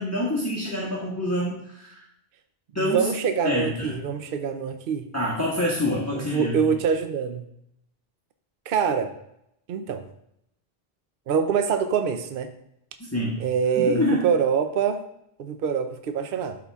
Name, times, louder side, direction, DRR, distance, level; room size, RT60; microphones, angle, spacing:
voice 1, 0.0-2.0 2.7-3.1 3.4-4.0 5.1-6.6 13.0-13.4 13.8-14.3, left 1 dB, 15° left, -6 dB, 1.4 m, -26 dB
voice 2, 2.8-5.1 6.1-7.4 8.7-9.1 9.7-10.0 11.3-12.5 13.4-15.0 15.4-16.6, right 6 dB, 65° right, 8 dB, 0.8 m, -25 dB
12.5 x 4.3 x 3.5 m, 0.77 s
omnidirectional pair, 1.0 m